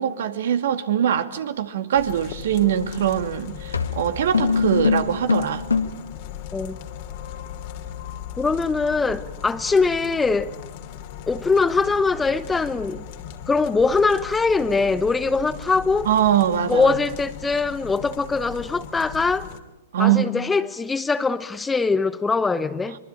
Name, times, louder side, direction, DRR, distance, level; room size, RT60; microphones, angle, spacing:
voice 1, 0.0-5.6 16.1-17.0 19.9-20.3, right 10 dB, 65° right, 2.2 m, -22 dB
sound 1, 1.9-19.6, left 9 dB, 50° left, 2.7 m, -38 dB
sound 2, 2.8-3.1 3.7-6.1, left 5 dB, 85° left, 1.9 m, -23 dB
voice 2, 8.4-10.5 11.3-13.0 13.5-16.1 16.7-19.5 20.0-23.0, left 4 dB, 10° left, 1.1 m, -22 dB
24.5 x 24.0 x 8.9 m
figure-of-eight pair, 110°, 0 cm